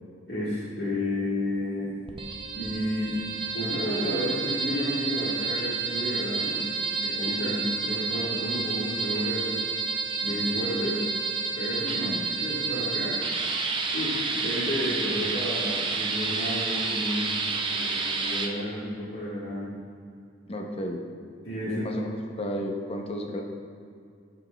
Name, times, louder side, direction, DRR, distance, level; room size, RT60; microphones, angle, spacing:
voice 1, 0.3-1.9 2.5-6.7 7.0-9.5 10.2-11.0 11.6-12.1 12.4-13.2 13.9-19.7 21.4-21.8, equal, 70° left, -12 dB, 1.5 m, -31 dB
sound 1, 2.1-18.5, right 4 dB, 25° right, 0.5 m, -30 dB
voice 2, 11.9-12.3 20.5-21.0 21.7-22.1 22.4-23.4, left 1 dB, 35° left, 2 dB, 0.6 m, -32 dB
11.5 x 4.0 x 2.2 m, 2.3 s
head